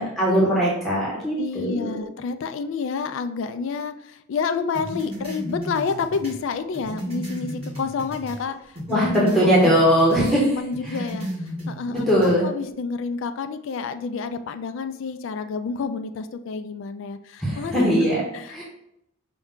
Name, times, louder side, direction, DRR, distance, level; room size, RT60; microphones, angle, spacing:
voice 1, 0.0-2.0 8.9-10.5 10.8-11.0 11.9-12.5 17.4-18.2 18.5-18.6, equal, ahead, -6 dB, 0.9 m, -20 dB
voice 2, 1.4-9.3 9.6-9.8 10.1-11.3 11.7-12.1 12.4-18.1 18.3-18.6, left 5 dB, 60° left, 10 dB, 0.3 m, -29 dB
sound 1, 4.7-8.4 8.8-10.4 10.7-12.4, equal, 25° right, 1.0 m, -34 dB
5.3 x 2.3 x 3.7 m, 0.80 s
head